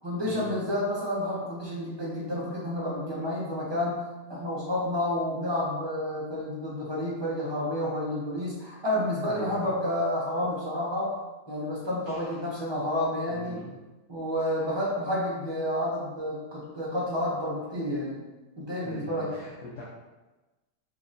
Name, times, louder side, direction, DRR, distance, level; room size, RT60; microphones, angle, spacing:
voice 1, 0.0-4.0 4.3-11.2 11.5-13.6 14.1-18.2 18.6-19.3, left 1 dB, 20° right, -7 dB, 0.9 m, -30 dB
voice 2, 9.3-9.7 12.1-12.6 13.3-13.7 14.4-14.6 18.8-19.8, equal, 65° left, -6 dB, 1.0 m, -42 dB
3.9 x 2.9 x 2.5 m, 1.1 s
omnidirectional pair, 1.6 m